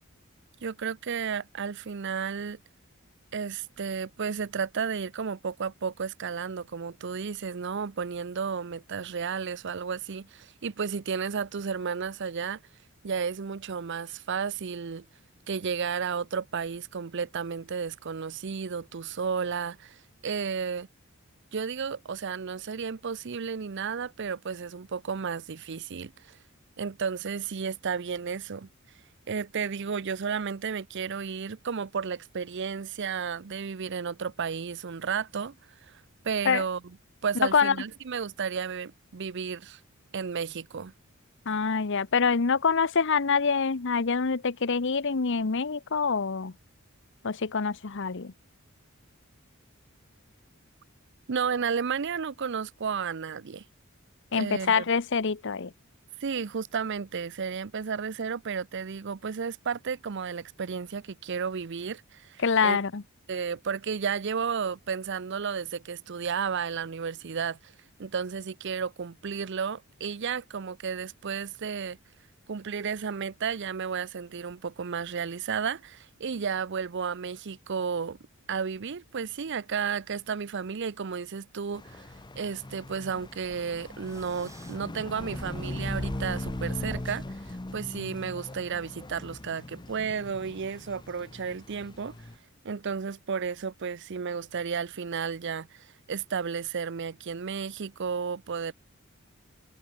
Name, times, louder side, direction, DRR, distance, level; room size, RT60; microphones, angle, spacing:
voice 1, 0.6-2.6 3.3-12.6 13.0-15.0 15.5-20.9 21.5-26.4 26.8-28.7 29.3-35.6 35.9-37.0 37.2-39.8 40.1-40.9 51.3-53.6 54.3-54.8 56.2-62.8 63.3-67.7 68.0-72.0 72.5-78.2 78.5-82.1 82.4-92.1 92.6-98.7, right 6 dB, 60° right, 0.6 m, -33 dB
voice 2, 37.4-37.7 41.5-46.5 47.2-48.3 54.3-55.7 62.4-63.0, left 5 dB, 60° left, 0.9 m, -25 dB
sound 1, 81.7-92.4, left 1 dB, 20° left, 0.8 m, -39 dB
sound 2, 83.1-88.2, right 1 dB, 15° right, 1.6 m, -44 dB
head